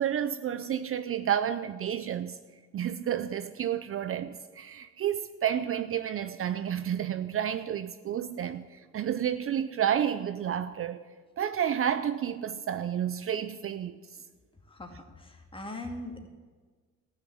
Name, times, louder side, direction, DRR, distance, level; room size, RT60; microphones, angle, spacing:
voice 1, 0.0-2.4 2.7-11.0 11.4-14.0, right 9 dB, 45° right, 0.5 m, -30 dB
voice 2, 14.7-16.3, left 2 dB, 15° left, 2.1 m, -41 dB
14.0 x 6.5 x 8.6 m
cardioid pair, 90°, 30 cm